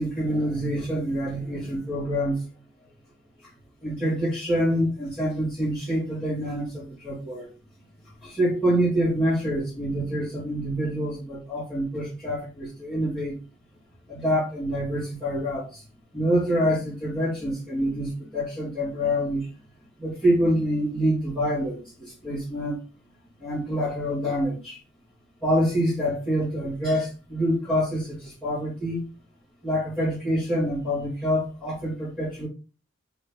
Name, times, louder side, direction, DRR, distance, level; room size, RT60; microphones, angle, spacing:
voice 1, 0.0-2.4 3.8-7.5 8.2-13.4 14.1-15.8 16.1-19.5 20.0-22.8 23.4-24.8 25.4-29.0 29.6-32.5, equal, 5° right, -10 dB, 1.8 m, -26 dB
3.8 x 3.2 x 3.3 m, 0.33 s
head